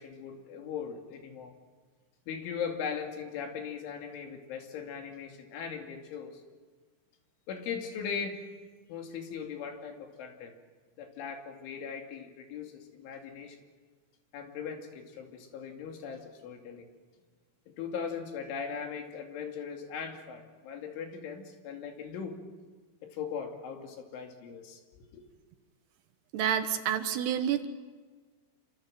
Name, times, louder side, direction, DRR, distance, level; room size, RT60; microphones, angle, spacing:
voice 1, 0.0-1.5 2.3-6.4 7.5-8.4 8.9-10.5 11.0-13.6 14.3-16.9 17.7-22.4 23.0-25.2, left 6 dB, 85° left, 4 dB, 5.0 m, -39 dB
voice 2, 26.3-27.7, right 9 dB, 70° right, 8 dB, 2.9 m, -28 dB
27.5 x 26.5 x 7.6 m, 1.4 s
omnidirectional pair, 5.4 m